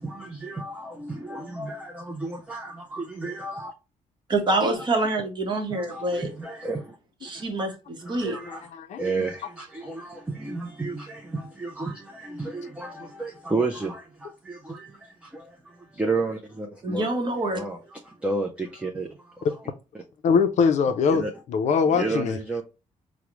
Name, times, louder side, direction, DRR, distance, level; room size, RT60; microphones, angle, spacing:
voice 1, 0.0-3.7 5.7-7.0 7.3-7.7 8.0-8.7 9.0-17.1 17.5-19.6 19.9-20.0 21.1-21.3 21.9-22.6, right 3 dB, 10° right, 0.4 m, -32 dB
voice 2, 4.3-6.3 7.2-7.7 8.1-8.4 16.8-17.6, right 2 dB, 35° right, 0.8 m, -26 dB
voice 3, 8.3-9.0 20.2-22.4, left 5 dB, 60° left, 0.4 m, -23 dB
4.7 x 2.0 x 2.9 m
cardioid pair, 160°, 14 cm